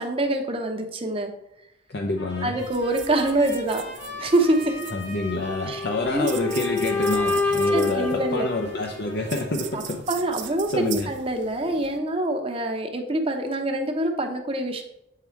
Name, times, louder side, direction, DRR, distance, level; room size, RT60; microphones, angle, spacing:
voice 1, 0.0-1.3 2.4-3.8 4.2-4.9 5.7-5.8 6.1-6.3 7.7-8.5 9.7-9.8 10.1-14.8, right 1 dB, 30° right, 4 dB, 0.8 m, -25 dB
voice 2, 1.9-2.6 4.9-10.0 10.7-11.1, left 2 dB, 60° left, 1 dB, 0.7 m, -27 dB
Trumpet, 2.2-9.8, left 2 dB, 85° left, 1.9 m, -41 dB
sound 1, 2.6-12.0, right 8 dB, 75° right, 0.6 m, -40 dB
sound 2, 5.3-9.4, left 4 dB, 10° left, 0.6 m, -28 dB
8.2 x 3.8 x 4.4 m, 0.83 s
head